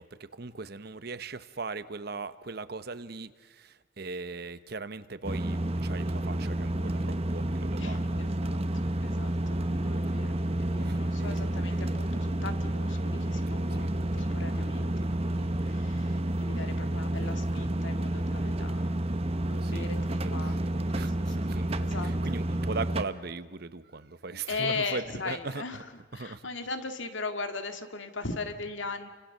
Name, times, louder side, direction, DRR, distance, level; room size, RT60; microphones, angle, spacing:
voice 1, 0.0-8.2 10.8-11.6 13.7-13.9 19.6-19.9 20.2-20.6 20.9-25.8 26.1-26.5, right 3 dB, 55° right, 13 dB, 1.0 m, -39 dB
sound 1, 5.2-23.0, right 1 dB, 30° right, 1.1 m, -30 dB
voice 2, 7.8-19.0 19.4-22.1 24.5-29.1, left 3 dB, 80° left, 7 dB, 2.1 m, -39 dB
29.5 x 25.5 x 6.7 m, 1.3 s
head